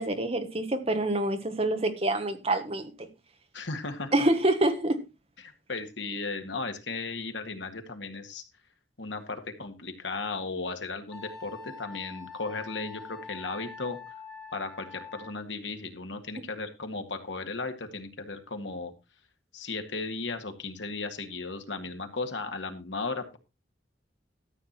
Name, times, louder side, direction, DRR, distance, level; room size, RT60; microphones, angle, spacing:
voice 1, 0.0-3.1 4.1-5.0, right 1 dB, 30° right, 1.4 m, -26 dB
voice 2, 3.5-4.1 5.4-8.4 9.0-14.0 14.5-18.9 19.5-23.4, left 3 dB, 80° left, 1.9 m, -36 dB
Wind instrument woodwind instrument, 11.1-15.3, left 5 dB, 5° left, 3.0 m, -45 dB
13.0 x 7.8 x 4.3 m
head